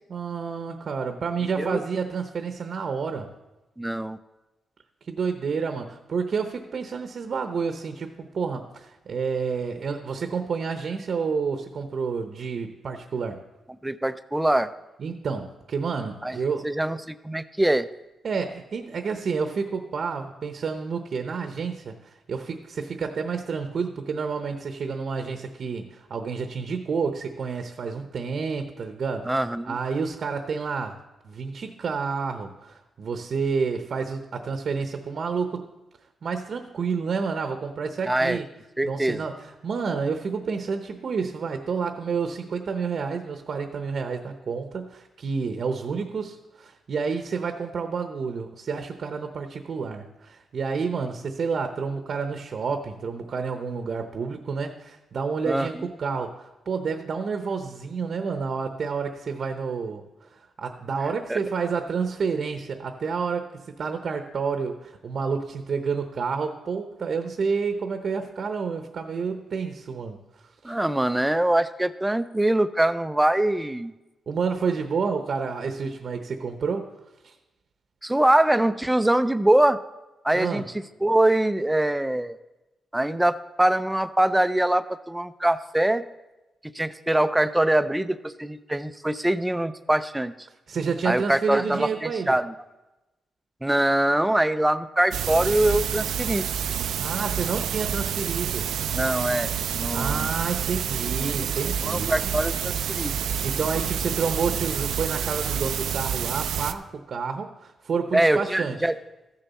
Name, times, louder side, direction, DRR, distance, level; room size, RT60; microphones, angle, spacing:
voice 1, 0.1-3.3 5.1-13.4 15.0-16.7 18.2-29.4 29.6-31.0 31.2-35.7 36.2-38.5 38.8-60.0 60.3-70.2 70.6-70.8 74.3-76.9 77.2-77.3 80.3-80.6 90.7-92.3 96.8-98.7 99.9-102.4 103.4-108.8, right 5 dB, 55° right, 6 dB, 0.8 m, -29 dB
voice 2, 3.8-4.2 13.8-14.7 16.2-16.4 16.6-17.9 29.3-29.8 38.1-38.4 38.8-39.2 55.5-55.7 61.3-61.4 70.6-73.9 78.0-79.8 80.2-80.6 81.0-82.4 82.9-86.0 86.7-90.3 91.0-92.5 93.6-96.4 98.9-100.3 101.2-101.5 101.8-103.1 108.1-108.9, right 1 dB, 10° right, 13 dB, 0.4 m, -23 dB
sound 1, 95.1-106.7, right 8 dB, 85° right, 0.4 m, -28 dB
14.5 x 6.8 x 4.1 m, 1.0 s
cardioid pair, 110°, 0 cm